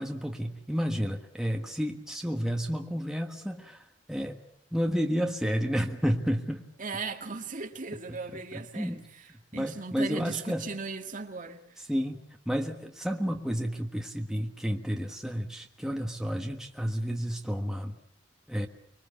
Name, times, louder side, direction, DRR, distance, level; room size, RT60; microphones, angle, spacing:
voice 1, 0.0-4.4 4.7-6.6 8.1-8.2 8.5-9.0 9.5-10.6 11.9-18.0 18.5-18.7, equal, 5° right, 1.5 m, -31 dB
voice 2, 6.8-11.8, right 4 dB, 45° right, 2.0 m, -38 dB
25.0 x 23.5 x 7.1 m
head